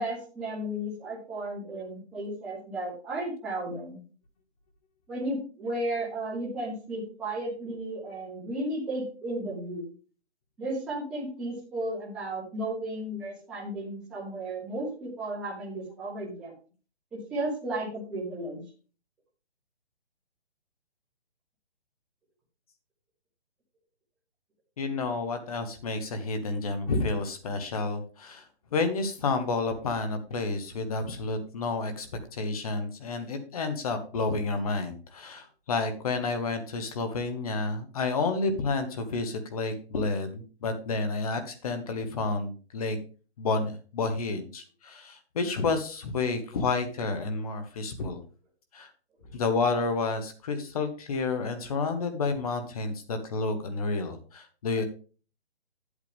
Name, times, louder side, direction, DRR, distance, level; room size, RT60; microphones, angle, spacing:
voice 1, 0.0-4.0 5.1-9.9 10.6-16.5 17.1-18.6, right 1 dB, 5° right, -6 dB, 0.7 m, -34 dB
voice 2, 24.8-28.4 28.7-32.1 32.3-43.0 43.4-48.2 48.7-48.9 49.3-54.8, left 3 dB, 35° left, 8 dB, 1.3 m, -30 dB
8.9 x 8.3 x 3.6 m, 0.37 s
hypercardioid pair, 165°, 33 cm